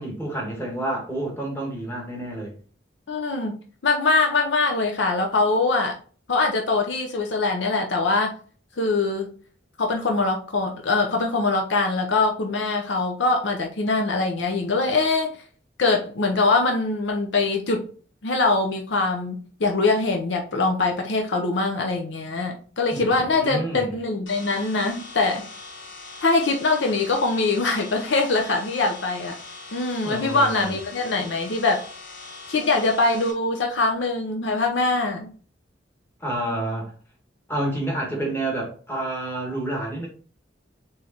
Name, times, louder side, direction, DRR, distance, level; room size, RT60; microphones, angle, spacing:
voice 1, 0.0-2.5 22.9-23.9 30.0-30.8 36.2-36.9 37.5-40.1, right 1 dB, 10° left, -1 dB, 1.3 m, -29 dB
voice 2, 3.1-3.5 3.8-5.9 6.3-8.3 8.8-9.3 9.8-15.3 15.8-17.9 18.2-25.4 26.2-29.4 29.7-31.8 32.5-35.3, left 3 dB, 70° left, 2 dB, 0.6 m, -23 dB
sound 1, 24.3-33.3, left 3 dB, 90° left, 1.0 m, -41 dB
4.4 x 3.2 x 2.8 m, 0.41 s
head